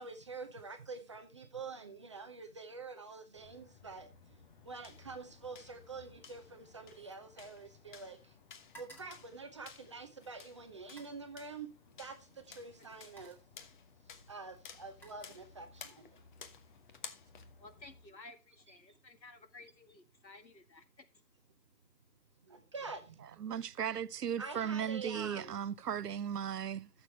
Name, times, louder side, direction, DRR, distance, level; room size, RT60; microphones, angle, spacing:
voice 1, 0.0-4.1 4.6-8.3 8.8-11.7 12.0-13.4 14.3-16.2 22.5-23.4 24.4-25.6, right 4 dB, 20° right, 0.6 m, -46 dB
sound 1, 3.4-18.1, left 6 dB, 30° left, 1.0 m, -55 dB
sound 2, 4.2-4.6 4.9-8.0 8.3-10.2 10.8-11.3 12.3-12.5 12.9-13.6 14.5-15.8 16.2-16.6, right 2 dB, 5° left, 1.3 m, -61 dB
voice 2, 17.6-21.0, left 2 dB, 90° left, 1.8 m, -55 dB
voice 3, 23.4-26.9, right 8 dB, 70° right, 0.7 m, -36 dB
14.0 x 6.8 x 3.3 m
figure-of-eight pair, 135°, 50 cm